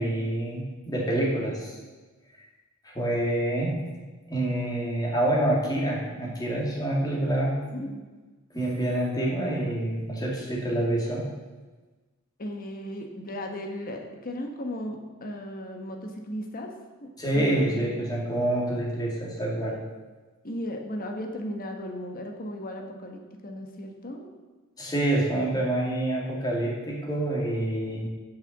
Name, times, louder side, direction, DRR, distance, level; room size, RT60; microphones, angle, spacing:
voice 1, 0.0-1.7 2.8-3.7 4.3-7.9 8.5-11.2 17.2-19.8 24.8-28.1, right 1 dB, 20° left, -3 dB, 2.4 m, -27 dB
voice 2, 12.4-16.7 17.0-17.9 20.4-24.3 27.9-28.1, equal, 45° left, 3 dB, 1.2 m, -36 dB
9.1 x 5.7 x 7.2 m, 1.3 s
head